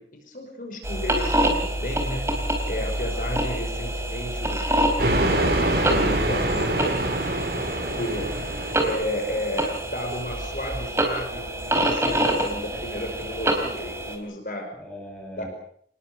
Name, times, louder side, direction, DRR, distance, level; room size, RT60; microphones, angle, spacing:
voice 1, 0.0-2.3 2.7-4.7 5.1-7.1 7.9-8.4 8.8-14.7 15.4-15.5, left 1 dB, 50° left, 4 dB, 5.4 m, -33 dB
sound 1, 0.8-14.2, right 1 dB, 15° right, 4.1 m, -27 dB
voice 2, 2.7-3.3 7.5-8.0 11.9-12.3 13.3-13.4 14.8-15.5, left 1 dB, 5° left, 0 dB, 7.6 m, -41 dB
sound 2, 5.0-9.5, right 1 dB, 65° right, 6.3 m, -25 dB
27.5 x 20.0 x 6.9 m, 0.64 s
head